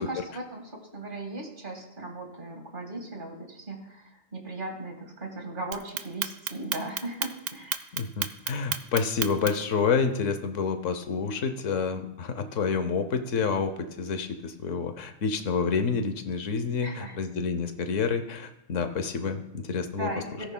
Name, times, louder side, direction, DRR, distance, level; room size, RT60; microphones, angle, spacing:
voice 1, 0.0-7.8 16.8-17.2 20.0-20.5, right 2 dB, 45° right, 2 dB, 1.9 m, -37 dB
Clock, 5.7-9.7, right 10 dB, 85° right, 1.0 m, -31 dB
voice 2, 7.9-13.7 14.0-20.1, left 5 dB, 90° left, 8 dB, 1.2 m, -28 dB
17.5 x 10.0 x 2.2 m, 0.87 s
omnidirectional pair, 1.3 m